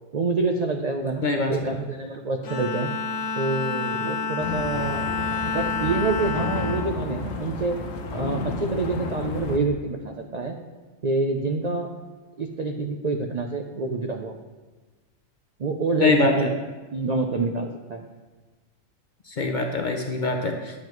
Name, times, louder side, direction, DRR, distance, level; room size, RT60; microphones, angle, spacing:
voice 1, 0.1-2.9 3.4-5.0 5.4-7.8 8.1-10.5 11.0-11.9 12.4-14.4 15.6-16.5 16.9-18.0, right 3 dB, 60° right, 3 dB, 0.4 m, -27 dB
voice 2, 1.2-1.7 16.0-16.5 19.3-20.7, left 3 dB, 50° left, 3 dB, 0.6 m, -23 dB
Bowed string instrument, 2.4-8.0, left 4 dB, 70° left, 1.1 m, -30 dB
sound 1, 4.4-9.6, left 4 dB, 85° left, 1.1 m, -32 dB
9.6 x 7.2 x 3.1 m, 1.3 s
omnidirectional pair, 1.3 m